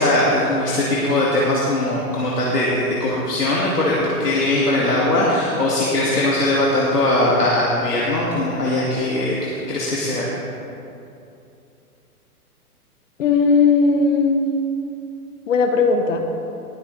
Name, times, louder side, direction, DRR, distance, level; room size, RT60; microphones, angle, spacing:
voice 1, 0.0-9.3 9.7-10.3, left 1 dB, 85° left, -5 dB, 2.0 m, -20 dB
voice 2, 13.2-14.5 15.5-16.2, left 4 dB, 55° left, 4 dB, 1.2 m, -17 dB
20.0 x 8.9 x 3.2 m, 2.7 s
figure-of-eight pair, 120°, 46 cm